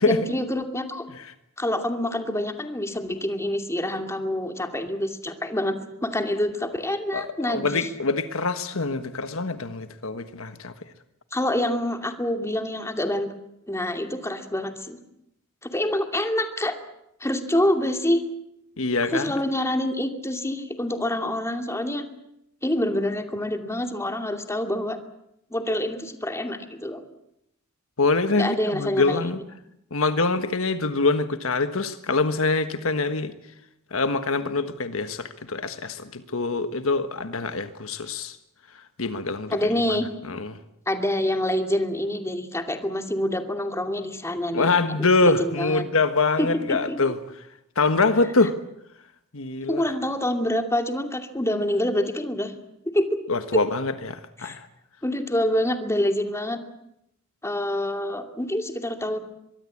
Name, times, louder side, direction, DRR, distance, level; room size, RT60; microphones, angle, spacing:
voice 1, 0.1-1.1 1.6-7.9 11.3-13.3 13.7-15.0 15.6-16.8 17.2-18.2 19.1-22.1 22.6-25.0 25.5-27.0 28.4-29.4 39.5-40.1 40.9-45.8 46.4-47.1 49.7-52.5 52.9-53.2 53.5-53.6 54.4-54.6 55.0-56.6 57.4-59.2, left 1 dB, 15° left, 5 dB, 2.6 m, -26 dB
voice 2, 7.1-10.7 18.8-19.3 28.0-29.4 29.9-33.3 33.9-38.4 39.0-39.6 40.3-40.6 44.5-47.2 47.8-48.5 49.3-49.8 53.3-54.7, left 3 dB, 70° left, 10 dB, 1.4 m, -24 dB
23.5 x 23.0 x 8.6 m, 0.80 s
head